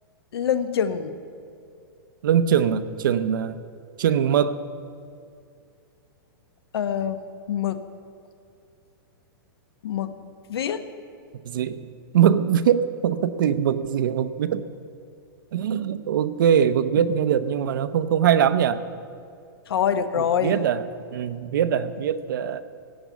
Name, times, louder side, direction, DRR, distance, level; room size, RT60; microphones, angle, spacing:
voice 1, 0.3-1.1 6.7-7.2 7.5-7.8 9.8-10.1 10.5-10.8 19.7-20.6, left 8 dB, 80° left, 10 dB, 1.1 m, -25 dB
voice 2, 2.2-3.6 4.0-4.6 11.4-11.9 12.1-14.7 15.5-18.8 20.4-20.8 21.1-22.6, right 9 dB, 60° right, 11 dB, 0.7 m, -22 dB
17.0 x 7.1 x 9.2 m, 2.4 s
supercardioid pair, 175°, 13 cm